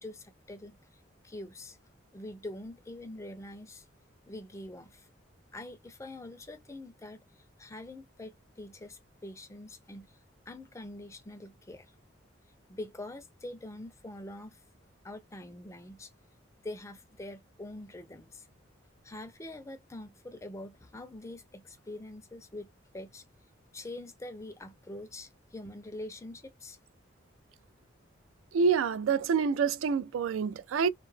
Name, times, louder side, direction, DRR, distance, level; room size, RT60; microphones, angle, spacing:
voice 1, 0.0-0.8 1.2-1.8 2.1-3.9 4.3-5.1 5.5-7.2 7.6-10.1 10.5-11.9 12.7-14.6 15.0-16.1 16.6-18.5 19.0-23.2 23.7-26.8, left 1 dB, 15° left, 0.4 m, -44 dB
voice 2, 28.5-30.9, right 5 dB, 85° right, 0.3 m, -27 dB
2.2 x 2.0 x 3.1 m
head